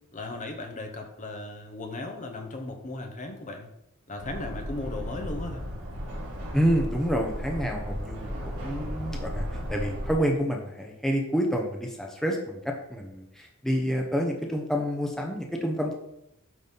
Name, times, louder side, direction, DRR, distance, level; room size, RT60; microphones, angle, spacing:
voice 1, 0.1-3.7 4.1-5.6, left 2 dB, 35° left, 4 dB, 1.0 m, -36 dB
sound 1, 4.2-10.1, equal, 70° right, 2.6 m, -35 dB
voice 2, 6.5-13.2 13.6-15.9, equal, ahead, 0 dB, 0.9 m, -28 dB
9.4 x 4.1 x 5.5 m, 0.80 s
head